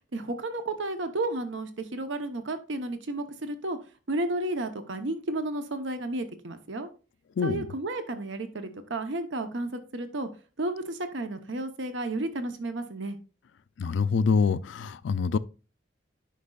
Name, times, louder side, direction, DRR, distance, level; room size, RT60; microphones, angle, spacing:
voice 1, 0.1-3.8 4.1-6.9 7.4-10.3 10.6-13.2, right 2 dB, 75° right, 0.8 m, -32 dB
voice 2, 7.4-7.7 13.8-15.4, left 5 dB, 70° left, 0.4 m, -25 dB
10.0 x 5.3 x 2.3 m
head